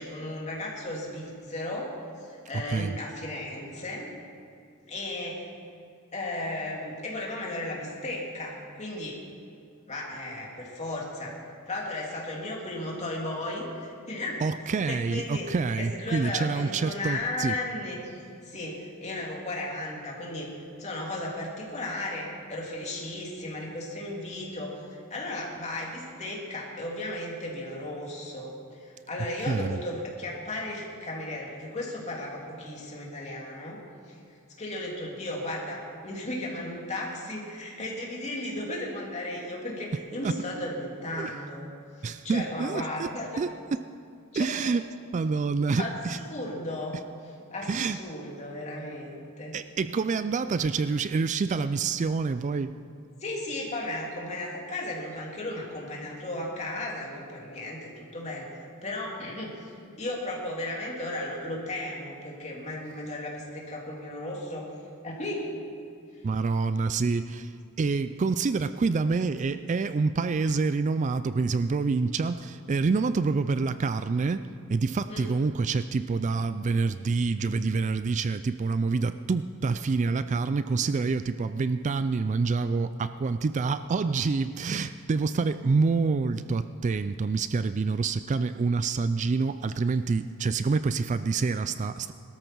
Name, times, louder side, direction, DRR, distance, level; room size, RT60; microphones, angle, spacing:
voice 1, 0.0-4.1 4.8-5.5 6.1-9.2 9.9-11.4 11.7-14.4 14.9-15.5 15.7-20.5 20.8-33.8 34.1-34.2 34.6-41.7 42.0-43.4 44.3-44.7 45.8-45.9 46.3-47.0 47.5-49.6 53.2-58.5 58.8-64.7 65.0-65.7 66.1-66.2 67.8-67.9 75.1-75.3 80.0-80.1, left 1 dB, 30° left, -3 dB, 3.1 m, -35 dB
voice 2, 14.4-17.5 29.5-29.8 40.2-40.4 41.2-41.3 42.0-43.1 43.4-43.5 44.4-44.8 45.1-46.2 47.6-48.0 49.5-52.7 66.2-92.1, right 4 dB, 35° right, 12 dB, 0.3 m, -27 dB
21.0 x 13.5 x 4.6 m, 2.4 s
head